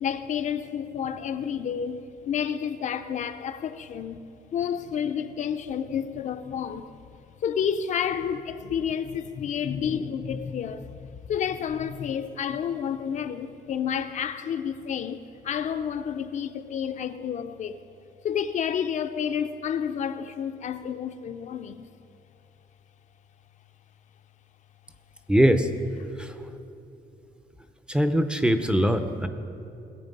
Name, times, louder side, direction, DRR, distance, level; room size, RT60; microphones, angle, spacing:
voice 1, 0.0-4.2 4.5-6.9 7.4-17.7 18.2-21.9, left 8 dB, 45° left, 0.5 m, -30 dB
voice 2, 25.3-25.7 26.2-26.3 27.9-29.3, equal, 5° right, 0.5 m, -21 dB
19.5 x 8.2 x 5.3 m
cardioid pair, 175°, 17 cm